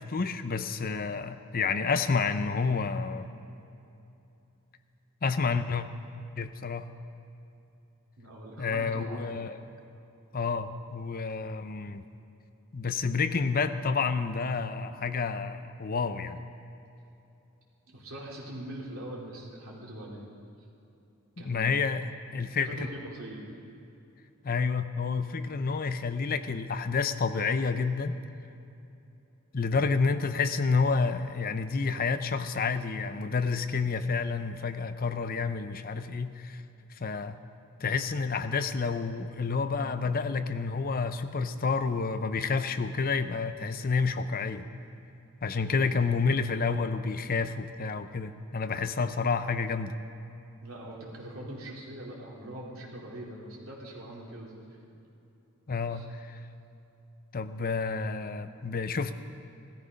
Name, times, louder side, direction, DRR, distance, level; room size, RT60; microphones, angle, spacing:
voice 1, 0.0-3.3 5.2-5.9 6.4-6.9 8.6-9.6 10.3-12.0 12.7-16.4 21.4-22.0 22.3-22.8 24.4-28.2 29.5-36.6 37.0-37.4 37.8-44.7 45.4-49.9 55.7-56.4 57.3-59.1, left 4 dB, 45° left, 10 dB, 0.6 m, -29 dB
voice 2, 8.2-9.4 17.9-20.3 21.4-21.7 22.6-23.4 45.5-45.9 50.6-54.6 55.9-56.0, right 1 dB, 70° right, -4 dB, 3.1 m, -42 dB
16.0 x 13.5 x 5.3 m, 2.8 s
head